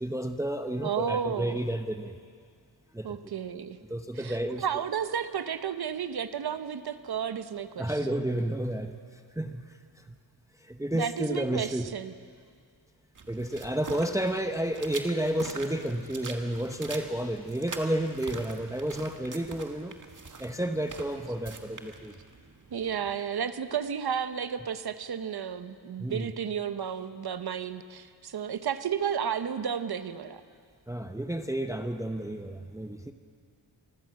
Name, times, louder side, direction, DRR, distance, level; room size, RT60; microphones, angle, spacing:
voice 1, 0.0-2.2 2.9-3.2 3.9-4.6 7.8-8.9 9.4-9.7 10.1-10.2 10.7-11.9 13.3-19.9 20.4-22.1 26.0-26.3 30.9-33.1, right 1 dB, 5° right, 7 dB, 0.8 m, -31 dB
voice 2, 0.8-1.6 3.0-3.8 4.2-7.9 10.9-12.1 22.7-30.4, right 8 dB, 60° right, 11 dB, 1.0 m, -32 dB
sound 1, 13.1-23.1, right 4 dB, 45° right, 1.7 m, -44 dB
25.0 x 14.0 x 7.6 m, 2.2 s
wide cardioid pair, 105°, 43 cm